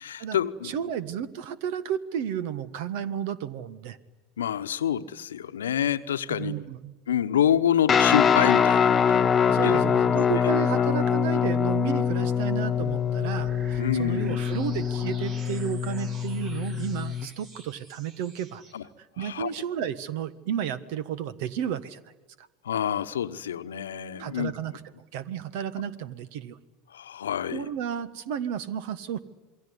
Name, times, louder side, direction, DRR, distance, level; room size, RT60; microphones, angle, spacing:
voice 1, 0.0-0.7 4.4-6.5 7.1-9.7 10.3-10.4 13.8-14.4 18.7-18.8 19.2-19.5 22.6-24.5 26.9-27.7, left 9 dB, 80° left, 12 dB, 1.0 m, -27 dB
voice 2, 0.6-4.0 6.3-6.9 9.5-18.6 19.0-22.0 22.4-22.5 24.2-24.8 25.1-26.6 27.5-29.2, right 9 dB, 65° right, 16 dB, 1.4 m, -32 dB
Guitar, 7.9-17.3, left 7 dB, 30° left, 1.2 m, -24 dB
sound 1, 12.7-18.7, right 3 dB, 50° right, 5.8 m, -46 dB
27.5 x 22.0 x 9.8 m, 1.1 s
hypercardioid pair, 80°, 0 cm